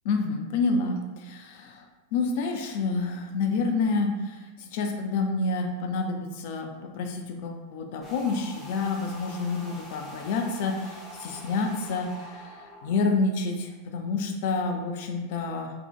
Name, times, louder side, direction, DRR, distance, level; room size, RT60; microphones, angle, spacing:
voice 1, 0.0-1.8 2.1-15.7, left 3 dB, 50° left, 3 dB, 0.3 m, -28 dB
sound 1, 8.0-13.0, equal, 5° left, 0.6 m, -44 dB
2.6 x 2.1 x 2.4 m, 1.2 s
figure-of-eight pair, 90°, 0 cm